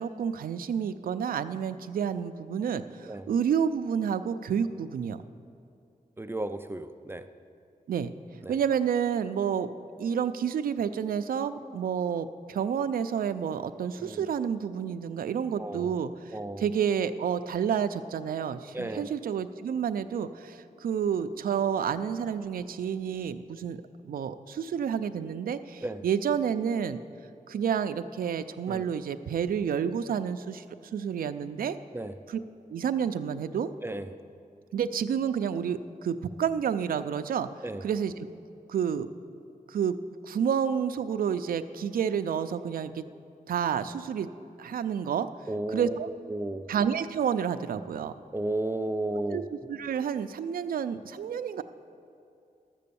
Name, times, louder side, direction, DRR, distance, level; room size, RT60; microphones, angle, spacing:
voice 1, 0.0-5.2 7.9-8.1 8.5-9.7 10.0-27.0 27.5-30.6 30.9-31.8 32.3-32.4 32.7-33.7 34.7-37.5 37.8-38.3 38.7-39.1 39.7-40.0 40.2-43.0 43.5-44.3 44.6-45.3 45.7-46.1 46.7-48.1 49.3-49.4 49.7-51.6, right 7 dB, 80° right, 10 dB, 0.4 m, -29 dB
voice 2, 6.2-7.3 8.4-8.5 14.0-14.3 15.6-15.9 16.3-16.6 18.7-19.1 25.8-26.0 28.7-28.9 31.9-32.1 33.8-34.1 37.6-37.8 45.5-46.7 48.3-49.4, right 2 dB, 15° right, 9 dB, 0.3 m, -33 dB
11.5 x 7.6 x 6.9 m, 2.5 s
wide cardioid pair, 170°, 15 cm